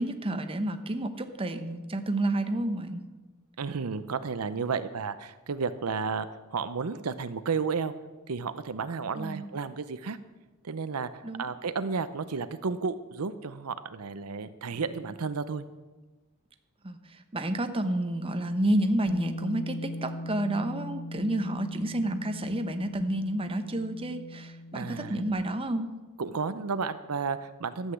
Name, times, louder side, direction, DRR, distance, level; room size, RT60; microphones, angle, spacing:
voice 1, 0.0-3.0 9.1-9.4 11.2-11.5 14.7-14.8 16.8-25.9, right 1 dB, 25° right, 7 dB, 0.9 m, -30 dB
voice 2, 3.6-7.9 8.3-10.2 10.6-15.6 24.7-25.2 26.2-27.9, right 5 dB, 75° right, 12 dB, 0.6 m, -32 dB
Bass guitar, 19.1-25.3, left 1 dB, 80° left, 0.8 m, -40 dB
13.0 x 8.2 x 7.8 m, 1.2 s
head